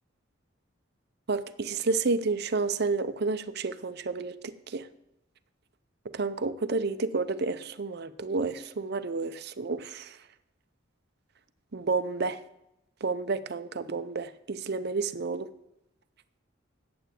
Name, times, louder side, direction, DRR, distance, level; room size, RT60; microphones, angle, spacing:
voice 1, 1.3-4.9 6.1-10.2 11.7-12.4 13.0-15.5, right 4 dB, 55° right, 12 dB, 0.6 m, -30 dB
9.0 x 7.8 x 9.0 m, 0.86 s
head